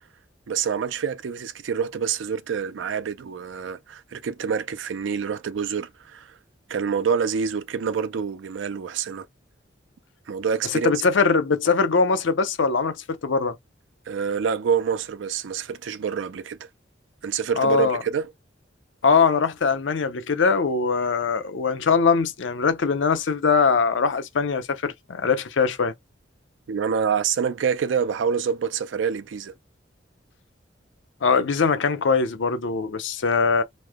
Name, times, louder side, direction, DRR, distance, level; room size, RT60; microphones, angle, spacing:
voice 1, 0.5-6.4 6.7-9.3 10.3-10.9 14.1-16.6 17.2-18.3 26.7-29.5, right 6 dB, 80° right, 0.4 m, -26 dB
voice 2, 10.7-13.6 17.6-18.0 19.0-25.9 31.2-33.6, left 5 dB, 85° left, 0.6 m, -22 dB
3.1 x 2.1 x 3.5 m
head